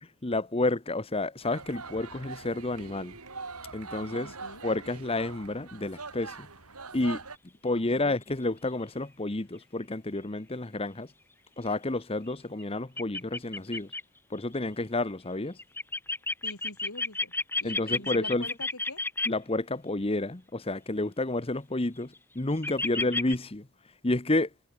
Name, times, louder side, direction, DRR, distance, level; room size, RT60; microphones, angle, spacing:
voice 1, 0.2-3.2 3.7-4.3 4.6-6.5 6.9-7.2 7.6-11.1 11.6-13.9 14.3-15.6 17.6-18.5 19.3-23.7 24.0-24.5, left 2 dB, 25° left, 1.1 m, -30 dB
sound 1, 1.4-7.4, right 4 dB, 90° right, 6.4 m, -43 dB
voice 2, 4.0-4.6 7.9-8.2 16.4-17.3 17.6-19.0 22.9-23.1, left 2 dB, 75° left, 7.1 m, -44 dB
sound 2, 12.6-12.7 13.0-14.0 15.6-19.3 22.0-22.2 22.6-23.4, left 2 dB, 10° left, 5.5 m, -31 dB
head